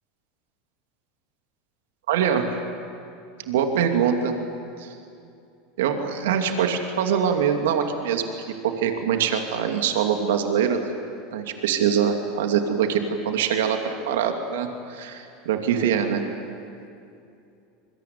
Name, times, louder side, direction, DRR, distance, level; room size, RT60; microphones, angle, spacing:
voice 1, 2.1-2.4 3.5-4.3 4.8-4.9 5.8-8.3 8.6-10.8 11.3-16.2, right 8 dB, 80° right, 5 dB, 2.5 m, -23 dB
26.0 x 22.5 x 9.5 m, 2.5 s
hypercardioid pair, 100°, 0 cm